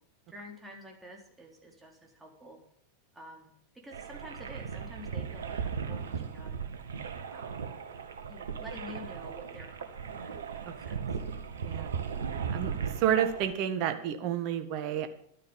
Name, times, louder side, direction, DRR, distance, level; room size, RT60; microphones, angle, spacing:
voice 1, 0.3-2.6 3.1-6.6 7.3-7.7 8.3-10.4 10.6-11.0, equal, 10° right, 0 dB, 4.1 m, -49 dB
sound 1, 3.9-13.5, right 6 dB, 65° right, 1.7 m, -37 dB
voice 2, 12.5-15.1, right 9 dB, 40° right, 9 dB, 1.6 m, -30 dB
12.0 x 9.6 x 7.3 m, 0.68 s
figure-of-eight pair, 90°, 0 cm